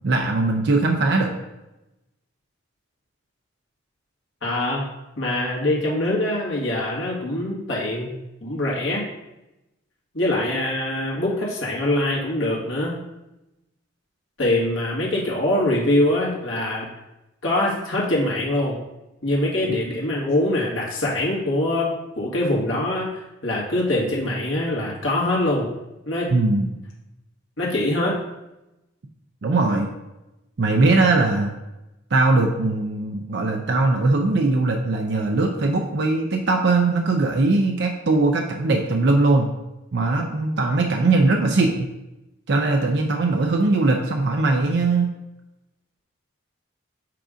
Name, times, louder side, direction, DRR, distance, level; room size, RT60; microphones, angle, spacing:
voice 1, 0.0-1.3 19.7-19.8 26.3-26.7 29.4-29.9 30.6-31.5 32.1-39.5 39.9-41.9 42.5-45.1, right 3 dB, 55° right, 2 dB, 0.5 m, -20 dB
voice 2, 4.4-4.8 5.2-8.1 8.4-9.0 10.1-12.9 14.4-16.9 17.4-18.8 19.2-25.7 26.0-26.3 27.6-28.2, left 1 dB, 75° left, -5 dB, 1.8 m, -23 dB
7.5 x 2.6 x 4.9 m, 0.96 s
head